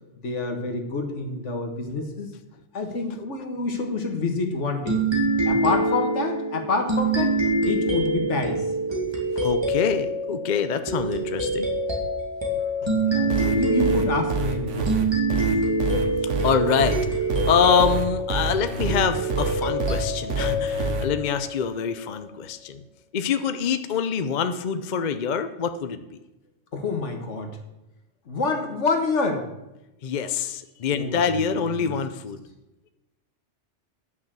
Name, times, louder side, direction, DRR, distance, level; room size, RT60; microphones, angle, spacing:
voice 1, 0.2-2.3 2.7-5.1 5.5-7.4 7.7-8.6 12.8-15.5 26.7-27.6 28.3-29.5 30.9-31.4 31.8-31.9, left 3 dB, 75° left, 5 dB, 1.7 m, -28 dB
sound 1, 4.9-22.0, right 2 dB, 20° right, 2.3 m, -25 dB
voice 2, 9.0-11.7 16.2-22.8 23.1-26.0 30.0-32.4, left 6 dB, 45° left, 9 dB, 0.6 m, -25 dB
sound 2, 13.3-21.1, right 4 dB, 80° right, 1.4 m, -27 dB
10.0 x 6.1 x 7.4 m, 0.97 s
omnidirectional pair, 1.2 m